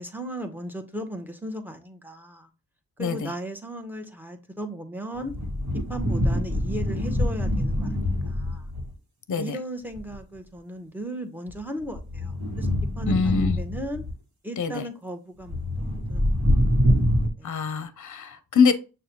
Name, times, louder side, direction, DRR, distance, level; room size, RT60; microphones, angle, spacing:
voice 1, 0.0-2.5 3.0-5.3 5.9-8.7 9.4-14.0 14.4-16.4 17.4-17.6, right 1 dB, 5° right, 0.8 m, -36 dB
voice 2, 3.0-3.3 9.3-9.6 13.1-13.6 14.6-14.9 17.4-18.7, left 5 dB, 55° left, 0.6 m, -24 dB
sound 1, 5.2-8.9 10.0-10.2 11.5-14.1 15.5-17.3, equal, 50° right, 1.2 m, -25 dB
6.5 x 2.2 x 2.8 m
cardioid pair, 55°, 37 cm